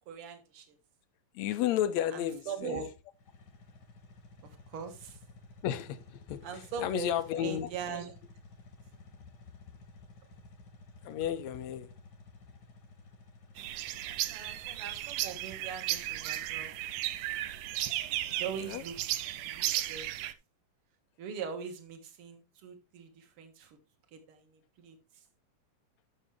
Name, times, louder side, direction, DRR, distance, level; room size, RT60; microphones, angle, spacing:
voice 1, 0.1-0.7 2.1-2.9 4.4-5.2 6.4-8.1 14.3-16.7 18.4-19.0 19.4-20.1 21.2-23.8 24.1-25.0, right 6 dB, 50° right, 2.2 m, -41 dB
voice 2, 1.3-2.8 5.6-7.7 11.0-11.9 18.7-18.8, left 11 dB, 75° left, 1.8 m, -32 dB
sound 1, 3.1-19.8, left 3 dB, 45° left, 1.5 m, -55 dB
sound 2, 13.6-20.3, right 14 dB, 85° right, 2.2 m, -35 dB
12.0 x 6.5 x 3.2 m
omnidirectional pair, 3.6 m